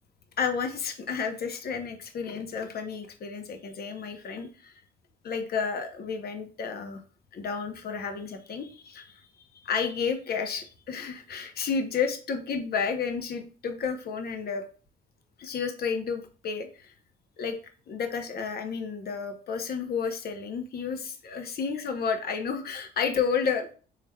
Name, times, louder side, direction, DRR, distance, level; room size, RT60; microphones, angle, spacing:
voice 1, 0.4-4.7 5.2-7.0 7.3-9.2 9.5-14.7 15.4-16.9 17.4-17.6 17.9-23.7, left 6 dB, 50° left, 6 dB, 0.8 m, -31 dB
4.8 x 3.3 x 2.2 m, 0.38 s
cardioid pair, 90°, 20 cm